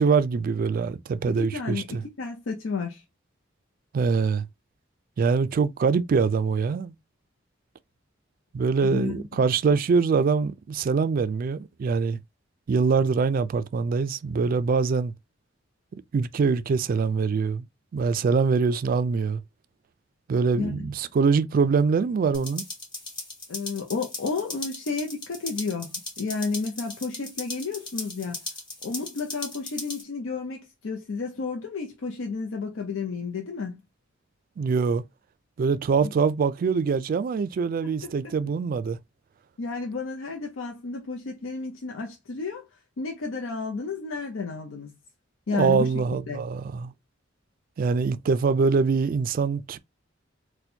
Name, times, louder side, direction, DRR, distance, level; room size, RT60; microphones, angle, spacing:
voice 1, 0.0-2.0 3.9-4.4 5.2-6.9 8.5-12.2 12.7-15.1 15.9-17.6 17.9-19.4 20.3-22.6 34.6-35.0 35.6-39.0 45.5-46.9 47.8-49.8, right 5 dB, 45° right, 0.3 m, -24 dB
voice 2, 1.3-3.0 8.8-9.4 20.6-20.9 23.5-28.4 28.8-33.8 36.0-36.1 37.8-38.3 39.6-42.7 43.0-45.0 45.5-45.9 46.3-46.4, left 4 dB, 85° left, 0.6 m, -32 dB
sound 1, 22.3-30.0, left 2 dB, 25° left, 1.1 m, -38 dB
4.2 x 2.2 x 2.7 m
head